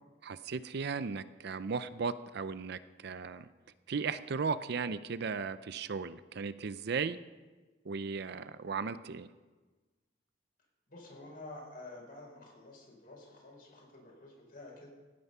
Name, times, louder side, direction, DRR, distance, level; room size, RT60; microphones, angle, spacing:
voice 1, 0.2-3.5 3.9-7.2 7.8-9.3, right 5 dB, 60° right, 14 dB, 0.5 m, -36 dB
voice 2, 10.9-14.9, left 2 dB, 50° left, -1 dB, 4.7 m, -50 dB
16.0 x 9.5 x 5.6 m, 1.3 s
head